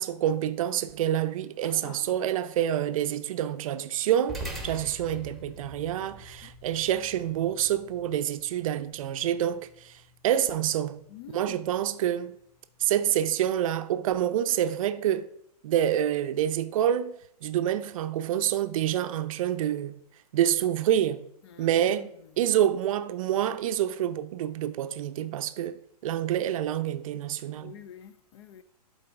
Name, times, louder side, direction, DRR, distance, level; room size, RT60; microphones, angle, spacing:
voice 1, 0.0-10.0 10.2-11.0 11.3-12.4 12.8-15.3 15.6-17.1 17.4-20.0 20.3-21.2 21.6-22.1 22.4-27.7, right 11 dB, 55° right, 0.5 m, -27 dB
voice 2, 1.6-2.2 6.4-6.5 11.1-11.6 21.4-22.3 27.6-28.6, left 9 dB, 40° left, 0.4 m, -47 dB
sound 1, 4.3-12.9, right 1 dB, ahead, 1.1 m, -45 dB
11.0 x 4.0 x 3.5 m
hypercardioid pair, 140°, 20 cm